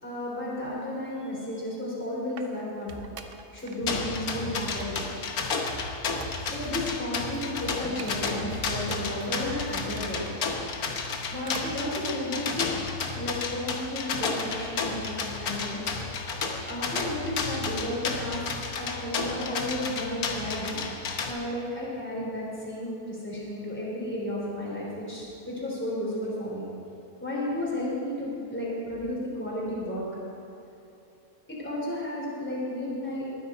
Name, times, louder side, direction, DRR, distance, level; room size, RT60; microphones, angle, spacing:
voice 1, 0.0-3.0 3.5-5.0 6.5-10.2 11.3-12.7 13.1-15.9 16.7-18.4 18.8-20.8 21.3-26.7 27.2-30.1 31.5-33.3, left 1 dB, 5° left, -6 dB, 3.5 m, -33 dB
sound 1, 1.8-3.8 4.0-4.4 4.8-7.0 7.3-7.4 7.8-8.5 8.8-10.4 10.9-11.7 12.0-12.2 12.7-12.8, right 5 dB, 50° right, 0.8 m, -46 dB
sound 2, 2.9-3.1 3.6-5.0 5.5-6.9 7.3-8.8 9.2-10.4, equal, 30° right, 2.7 m, -44 dB
sound 3, 3.9-21.3, left 4 dB, 75° left, 1.5 m, -32 dB
20.5 x 9.8 x 4.4 m, 2.8 s
omnidirectional pair, 1.6 m